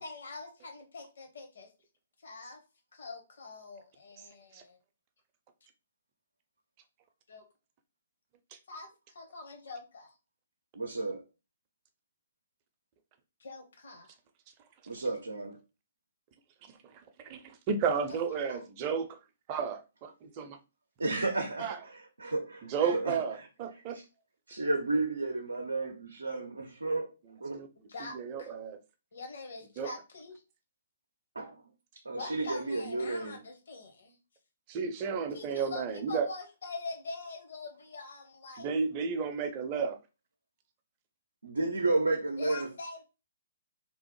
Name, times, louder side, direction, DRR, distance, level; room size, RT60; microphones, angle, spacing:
voice 1, 0.0-1.7 2.2-2.6 2.9-4.8 7.3-7.4 8.7-10.1 13.4-14.1 18.1-18.6 27.9-28.5 29.1-30.4 32.1-34.2 35.3-38.7 42.4-43.0, left 3 dB, 65° left, 0.9 m, -44 dB
voice 2, 10.7-11.2 14.9-15.6 21.0-23.2 23.9-24.0 24.5-27.1 27.4-27.6 31.4-31.6 32.0-33.4 41.4-42.7, right 2 dB, 85° right, 0.5 m, -32 dB
voice 3, 16.9-19.2 19.5-20.6 21.6-21.8 22.6-24.0 27.5-27.7 28.1-28.8 29.8-29.9 34.7-36.3 38.6-40.0, right 6 dB, 35° right, 0.5 m, -32 dB
2.9 x 2.0 x 3.0 m
figure-of-eight pair, 130°, 0 cm